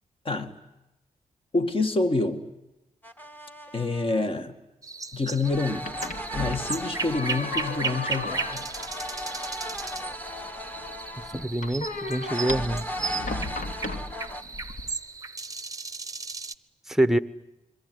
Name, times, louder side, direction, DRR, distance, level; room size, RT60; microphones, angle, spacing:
voice 1, 1.5-2.4 3.7-4.6 5.1-5.9 6.3-8.7, left 3 dB, 40° left, 2.2 m, -27 dB
sound 1, 3.0-4.2 5.4-11.5 12.2-14.4, equal, 15° left, 1.7 m, -37 dB
sound 2, 4.8-16.5, right 4 dB, 25° right, 0.9 m, -36 dB
sound 3, 5.4-14.9, left 3 dB, 65° left, 2.6 m, -37 dB
voice 2, 11.3-12.9 16.9-17.2, right 1 dB, 5° right, 1.0 m, -25 dB
26.5 x 22.0 x 9.7 m
cardioid pair, 90°, 14 cm